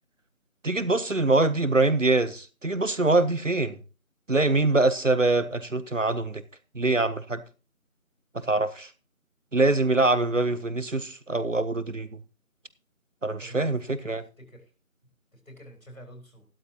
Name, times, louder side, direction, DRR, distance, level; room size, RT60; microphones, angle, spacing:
voice 1, 0.6-3.8 4.3-6.4 6.7-7.4 8.3-8.9 9.5-12.1 13.2-14.2, right 2 dB, 60° right, 1.0 m, -24 dB
voice 2, 13.4-14.1 14.4-14.6 15.5-16.5, equal, 70° left, 4.3 m, -47 dB
13.0 x 12.5 x 2.9 m
figure-of-eight pair, 180°, 42 cm